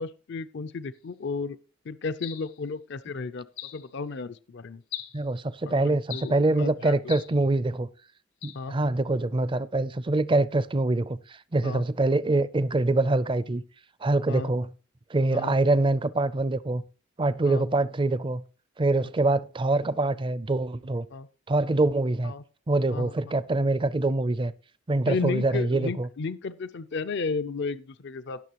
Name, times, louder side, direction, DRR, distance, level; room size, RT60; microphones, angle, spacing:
voice 1, 0.0-1.6 1.9-3.5 3.7-4.8 5.7-7.1 8.5-8.8 11.6-11.8 14.3-14.5 15.3-15.5 17.5-17.7 21.1-21.3 22.2-22.4 22.9-23.1 25.1-28.4, left 4 dB, 55° left, 0.5 m, -33 dB
sound 1, 2.2-2.6 3.6-3.9 4.9-5.2 6.1-6.4 7.1-7.4 8.4-8.7, left 12 dB, 75° left, 1.5 m, -39 dB
voice 2, 5.1-7.9 8.4-13.6 14.0-14.7 15.1-16.8 17.2-18.4 18.8-21.0 21.5-22.3 22.7-24.5 24.9-26.1, right 2 dB, 25° right, 0.4 m, -25 dB
17.0 x 6.7 x 3.0 m
head